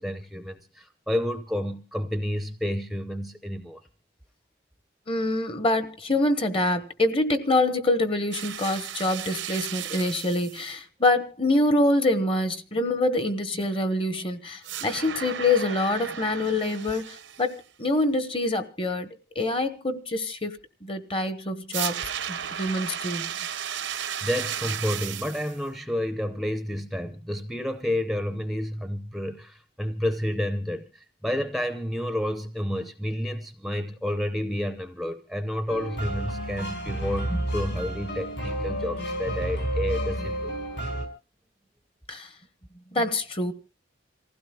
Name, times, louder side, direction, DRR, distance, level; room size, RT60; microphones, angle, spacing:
voice 1, 0.0-3.8 23.9-40.5, left 1 dB, ahead, 0.6 m, -30 dB
voice 2, 5.1-20.5 20.8-23.3 42.1-42.3 42.9-43.5, left 2 dB, 30° left, 1.1 m, -25 dB
sound 1, 8.3-10.7 14.6-17.6 21.7-25.6, right 9 dB, 80° right, 0.8 m, -34 dB
sound 2, 35.7-41.1, right 1 dB, 65° left, 5.2 m, -30 dB
27.5 x 15.5 x 2.3 m
head